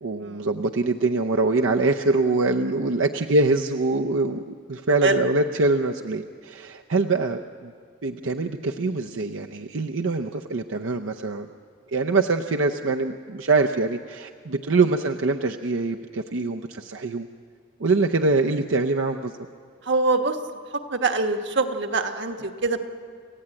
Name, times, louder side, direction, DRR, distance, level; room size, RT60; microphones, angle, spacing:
voice 1, 0.0-7.7 8.0-11.5 11.9-17.3 17.8-19.3, right 3 dB, 85° right, 4 dB, 0.7 m, -24 dB
voice 2, 19.8-20.4 20.9-22.8, right 3 dB, 65° right, 6 dB, 1.4 m, -24 dB
28.5 x 15.0 x 8.9 m, 2.1 s
head